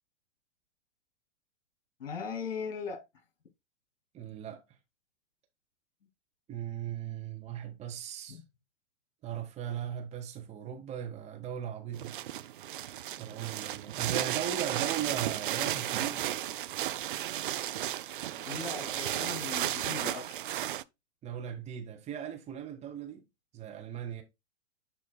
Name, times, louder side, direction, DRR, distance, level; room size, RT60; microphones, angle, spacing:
voice 1, 2.0-3.0 8.3-8.4 18.4-20.3, left 5 dB, 55° left, 2.5 m, -38 dB
voice 2, 4.1-4.6 6.5-8.4 9.2-12.1 13.2-16.2 21.2-23.2 23.5-24.2, right 9 dB, 20° right, 1.4 m, -38 dB
sound 1, 11.9-20.8, right 12 dB, 45° right, 0.4 m, -34 dB
11.0 x 4.5 x 2.2 m
figure-of-eight pair, 105°, 36 cm